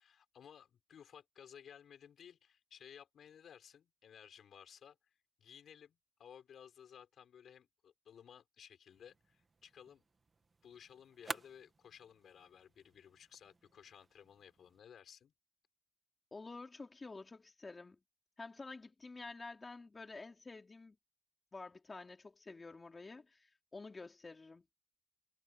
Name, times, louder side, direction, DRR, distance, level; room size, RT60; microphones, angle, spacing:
voice 1, 0.0-10.0 10.6-15.3, left 8 dB, 90° left, 6.2 m, -58 dB
sound 1, 8.9-14.8, right 4 dB, 40° right, 2.3 m, -52 dB
voice 2, 16.3-18.0 18.4-21.0 21.5-24.6, left 3 dB, 35° left, 3.1 m, -50 dB
cardioid pair, 90°, 0 cm